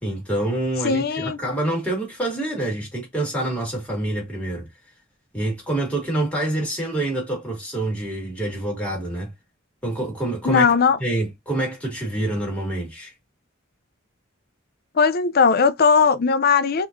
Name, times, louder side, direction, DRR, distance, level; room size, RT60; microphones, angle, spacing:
voice 1, 0.0-4.7 5.3-9.3 9.8-10.7 11.0-13.1, right 1 dB, 5° left, 2.0 m, -26 dB
voice 2, 0.8-1.4 10.5-11.0 15.0-16.9, left 5 dB, 45° left, 0.5 m, -18 dB
4.1 x 2.9 x 2.6 m
head